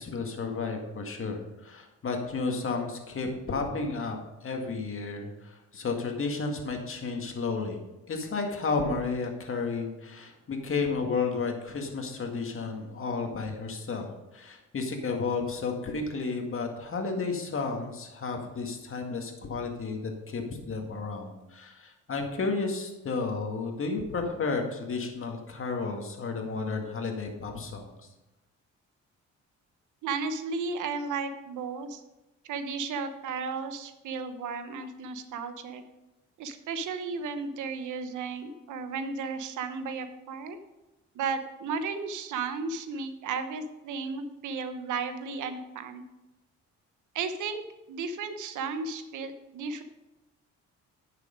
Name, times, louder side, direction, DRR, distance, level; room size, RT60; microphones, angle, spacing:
voice 1, 0.0-7.8 8.1-27.9, left 4 dB, 45° left, 3 dB, 2.0 m, -32 dB
voice 2, 30.0-32.0 32.4-35.8 36.4-40.6 41.1-46.0 47.1-47.6 47.9-49.8, right 4 dB, 80° right, 9 dB, 1.0 m, -34 dB
9.6 x 6.8 x 5.1 m, 1.0 s
cardioid pair, 90°, 30 cm